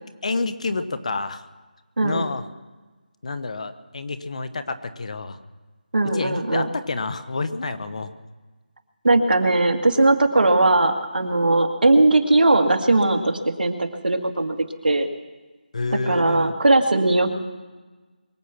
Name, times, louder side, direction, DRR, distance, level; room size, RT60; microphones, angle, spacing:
voice 1, 0.2-1.4 2.0-2.4 3.2-5.4 6.1-8.1 15.7-16.5, left 3 dB, 45° left, 11 dB, 1.0 m, -28 dB
voice 2, 5.9-6.7 9.0-14.6 14.8-15.1 16.1-17.4, right 2 dB, 75° right, 4 dB, 2.0 m, -19 dB
23.5 x 8.2 x 6.0 m, 1.3 s
figure-of-eight pair, 170°, 5 cm